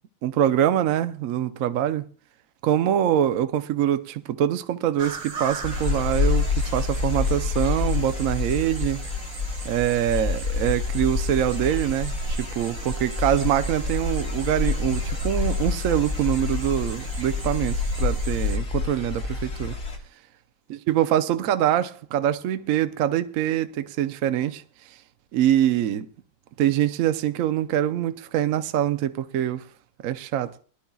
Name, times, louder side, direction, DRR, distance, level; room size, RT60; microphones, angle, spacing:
voice 1, 0.2-2.1 2.6-9.0 9.6-19.8 20.9-24.6 25.3-26.1 26.6-29.6 30.0-30.5, right 11 dB, 60° right, 0.9 m, -24 dB
sound 1, 5.0-18.6, right 2 dB, 80° right, 2.2 m, -35 dB
sound 2, 5.6-20.0, left 4 dB, 45° left, 2.7 m, -28 dB
22.0 x 11.5 x 2.3 m
omnidirectional pair, 2.0 m